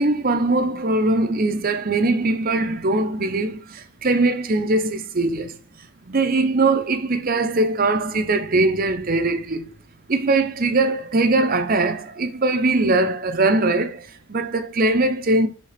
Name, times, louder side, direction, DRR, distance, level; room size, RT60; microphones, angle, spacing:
voice 1, 0.0-5.6 6.0-9.7 10.1-15.5, right 2 dB, 40° right, 0.7 m, -21 dB
5.6 x 3.7 x 5.0 m
head